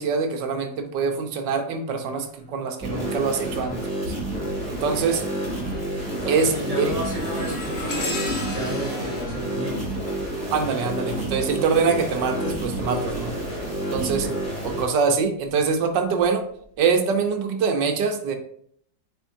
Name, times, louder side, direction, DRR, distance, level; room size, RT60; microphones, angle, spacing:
voice 1, 0.0-4.1 4.7-5.2 6.2-6.9 10.5-13.4 13.9-14.3 14.6-16.4 16.8-18.4, right 5 dB, 70° right, 5 dB, 1.4 m, -24 dB
sound 1, 2.8-14.9, right 1 dB, 10° right, 2.6 m, -29 dB
sound 2, 3.4-3.7 4.2-11.0 12.3-14.5 15.1-15.3 16.2-16.3, left 2 dB, 35° left, 1.6 m, -36 dB
voice 2, 6.2-9.9 14.0-14.4, right 1 dB, 35° right, -4 dB, 2.8 m, -33 dB
8.9 x 4.4 x 2.7 m, 0.67 s
omnidirectional pair, 2.0 m